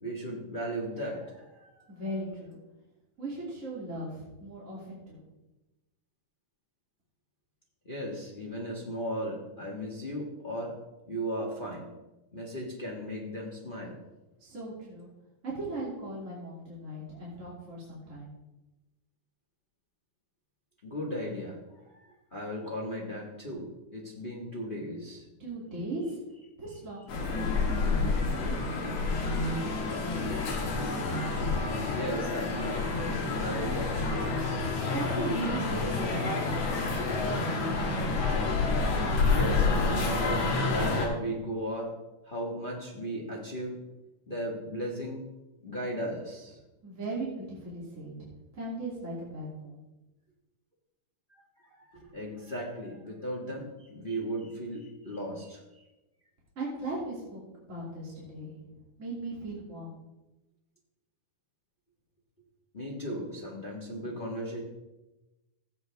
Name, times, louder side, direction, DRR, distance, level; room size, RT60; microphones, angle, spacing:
voice 1, 0.0-1.9 7.8-10.7 11.1-11.8 12.3-14.0 20.8-25.2 31.2-31.5 31.9-32.9 33.4-34.4 39.3-41.9 42.2-43.8 44.3-45.2 45.6-46.6 51.3-55.9 62.7-64.6, equal, 30° left, -2 dB, 0.9 m, -36 dB
voice 2, 1.9-2.6 3.2-5.2 14.4-15.1 15.4-18.3 25.4-26.2 26.6-28.8 34.9-36.5 46.8-48.3 48.5-49.8 56.6-57.4 57.7-58.6 59.0-60.0, right 2 dB, 25° right, -6 dB, 2.6 m, -38 dB
sound 1, 27.1-41.1, left 3 dB, 55° left, 2.5 m, -28 dB
16.0 x 8.0 x 3.5 m, 1.0 s
omnidirectional pair, 3.8 m